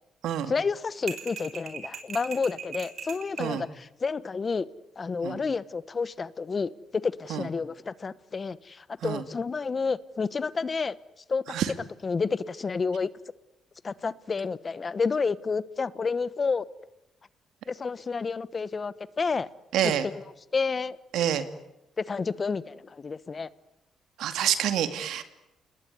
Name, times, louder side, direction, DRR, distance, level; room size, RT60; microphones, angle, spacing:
voice 1, 0.5-4.7 5.0-11.0 11.3-11.4 12.0-13.1 13.8-16.6 17.7-19.5 19.8-21.0 22.0-23.5, left 4 dB, 35° left, 1.1 m, -30 dB
sound 1, 1.1-3.5, right 7 dB, 60° right, 5.3 m, -39 dB
voice 2, 19.7-20.1 21.1-21.4 24.2-25.2, right 10 dB, 80° right, 2.4 m, -27 dB
29.0 x 20.5 x 9.6 m
cardioid pair, 90°, 0 cm